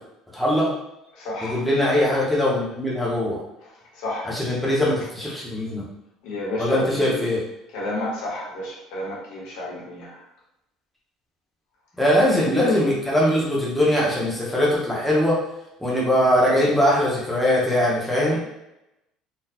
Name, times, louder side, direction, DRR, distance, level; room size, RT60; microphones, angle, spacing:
voice 1, 0.3-0.7 1.4-3.4 4.3-5.8 6.6-7.4 12.0-15.4 15.8-18.4, left 1 dB, ahead, -6 dB, 0.8 m, -21 dB
voice 2, 1.1-1.6 3.9-4.5 6.2-7.2 7.7-10.2 12.2-12.7 18.3-18.4, left 1 dB, 80° left, -5 dB, 1.4 m, -31 dB
3.9 x 2.2 x 2.8 m, 0.88 s
cardioid pair, 150°, 0 cm